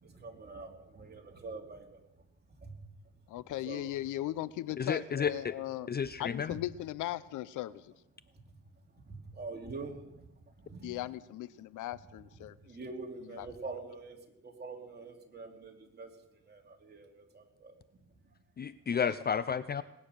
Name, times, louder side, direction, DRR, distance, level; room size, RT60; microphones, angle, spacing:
voice 1, 0.0-2.0 2.6-2.7 3.6-3.9 6.5-6.6 8.4-8.5 9.0-10.3 10.6-10.9 12.4-16.1 16.5-17.7, right 3 dB, 35° right, 2 dB, 3.0 m, -45 dB
voice 2, 3.3-5.9 6.2-7.9 10.8-12.6 13.2-13.5, left 14 dB, 80° left, 18 dB, 0.6 m, -38 dB
voice 3, 4.8-5.6 5.9-6.5 18.6-19.8, left 7 dB, 35° left, 15 dB, 0.5 m, -32 dB
19.5 x 9.6 x 6.6 m, 0.90 s
cardioid pair, 90°, 30 cm